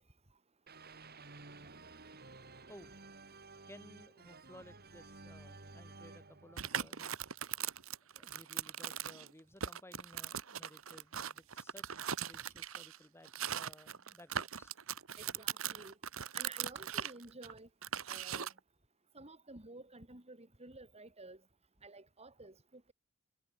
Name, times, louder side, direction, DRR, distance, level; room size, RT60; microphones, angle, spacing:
sound 1, 0.7-7.6, right 3 dB, 50° right, 5.0 m, -54 dB
voice 1, 3.7-7.3 8.2-11.8 12.2-14.8 15.3-15.4, left 1 dB, 10° left, 6.2 m, -58 dB
sound 2, 6.6-9.3 9.6-13.0 13.3-18.6, right 9 dB, 70° right, 1.4 m, -40 dB
voice 2, 15.4-15.9 16.3-17.7 18.1-18.5 19.1-21.4 21.8-22.5, right 2 dB, 30° right, 4.2 m, -52 dB
head